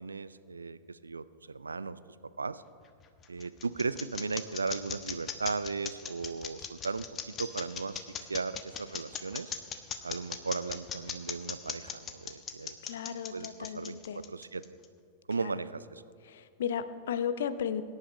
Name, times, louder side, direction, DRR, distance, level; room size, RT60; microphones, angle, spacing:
voice 1, 0.0-2.0 2.4-2.6 3.3-8.0 8.3-9.5 10.0-12.8 13.3-14.0 14.3-14.6 15.3-16.0, right 4 dB, 75° right, 15 dB, 0.4 m, -36 dB
sound 1, 2.8-14.8, left 7 dB, 25° left, 1.2 m, -39 dB
voice 2, 12.8-14.3 15.4-15.6 16.2-17.8, left 8 dB, 60° left, 13 dB, 0.7 m, -35 dB
23.0 x 11.0 x 3.2 m, 2.3 s
figure-of-eight pair, 90°, 0 cm